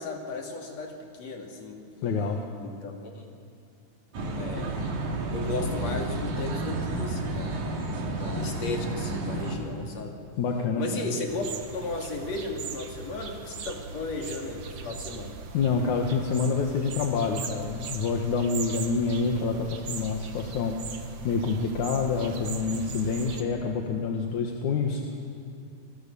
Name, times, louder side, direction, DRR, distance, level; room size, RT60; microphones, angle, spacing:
voice 1, 0.0-1.8 2.6-3.3 4.4-4.9 5.3-7.6 8.2-10.2 10.8-15.3, left 3 dB, 60° left, 1 dB, 4.1 m, -35 dB
voice 2, 2.0-2.4 10.4-11.1 15.5-20.8 21.2-25.0, left 5 dB, 75° left, 2 dB, 2.9 m, -27 dB
sound 1, 4.1-9.6, right 2 dB, 80° right, 4.0 m, -31 dB
sound 2, 11.3-23.4, right 5 dB, 60° right, 2.4 m, -39 dB
29.5 x 22.0 x 7.0 m, 2.5 s
omnidirectional pair, 3.4 m